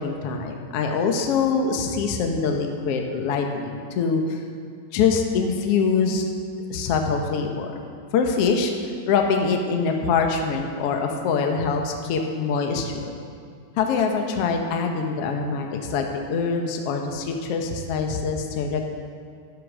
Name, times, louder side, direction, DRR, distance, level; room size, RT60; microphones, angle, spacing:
voice 1, 0.0-4.4 4.9-6.2 6.7-7.8 8.1-8.7 9.1-13.2 13.8-18.9, left 5 dB, 75° left, 3 dB, 1.4 m, -24 dB
11.5 x 9.7 x 6.2 m, 2.3 s
omnidirectional pair, 4.0 m